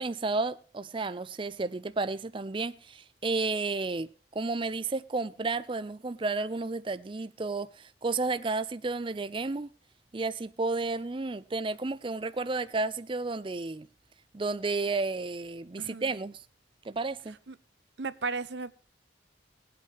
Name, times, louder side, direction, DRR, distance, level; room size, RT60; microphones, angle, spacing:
voice 1, 0.0-9.7 10.1-13.9 14.3-16.4 16.8-17.4, right 3 dB, 30° right, 0.5 m, -32 dB
voice 2, 15.8-16.1 17.5-17.6 18.0-18.8, right 4 dB, 80° right, 0.9 m, -35 dB
21.5 x 8.5 x 2.9 m
head